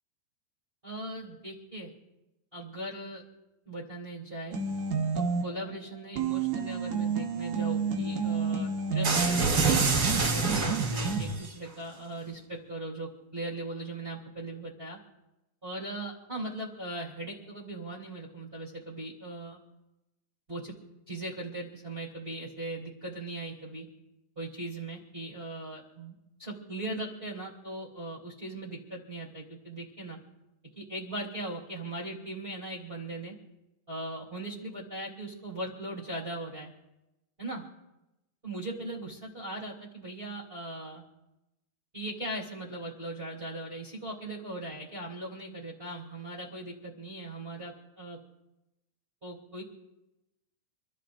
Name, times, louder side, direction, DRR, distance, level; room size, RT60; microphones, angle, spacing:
voice 1, 0.8-1.9 2.5-3.2 3.6-4.6 5.1-9.7 10.1-15.0 15.6-19.6 20.5-20.7 21.1-23.9 24.3-26.1 26.4-30.2 30.7-33.3 33.9-36.7 37.4-37.6 38.4-41.0 41.9-48.2 49.2-49.6, right 1 dB, 20° right, -5 dB, 1.8 m, -39 dB
sound 1, 4.5-5.7 6.2-11.3, right 5 dB, 85° right, 1.7 m, -30 dB
sound 2, 9.0-11.5, right 4 dB, 35° right, 2.7 m, -27 dB
28.5 x 14.5 x 2.5 m, 0.96 s
omnidirectional pair, 5.5 m